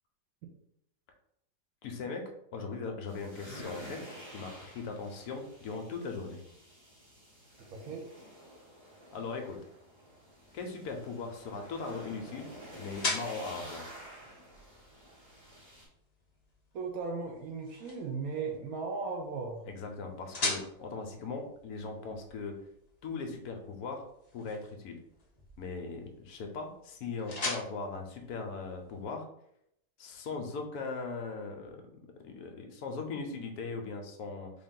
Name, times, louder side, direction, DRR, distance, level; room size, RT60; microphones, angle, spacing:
voice 1, 1.8-4.0 4.3-6.4 9.1-9.6 10.5-12.5 12.8-14.0 19.6-22.6 23.0-24.0 24.3-25.0 25.6-29.2 30.0-31.8 32.2-34.5, left 4 dB, 70° left, 3 dB, 1.1 m, -39 dB
sound 1, 3.1-15.9, equal, 15° right, 1.1 m, -50 dB
voice 2, 7.7-8.1 16.7-19.6, right 4 dB, 65° right, 2 dB, 1.0 m, -37 dB
sound 2, 10.3-29.1, left 2 dB, 45° left, 0.5 m, -43 dB
3.5 x 2.5 x 3.7 m, 0.75 s
omnidirectional pair, 1.9 m